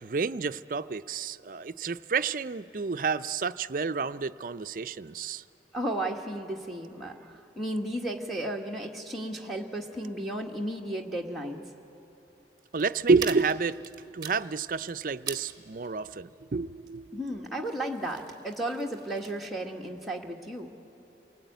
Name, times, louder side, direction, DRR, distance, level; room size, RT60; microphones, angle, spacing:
voice 1, 0.0-5.4 12.7-17.2, right 4 dB, 50° right, 13 dB, 0.5 m, -29 dB
voice 2, 5.7-11.6 17.1-20.7, right 1 dB, ahead, -2 dB, 1.5 m, -34 dB
sound 1, 12.7-19.4, right 7 dB, 25° right, 1.3 m, -45 dB
28.0 x 19.0 x 9.2 m, 2.9 s
head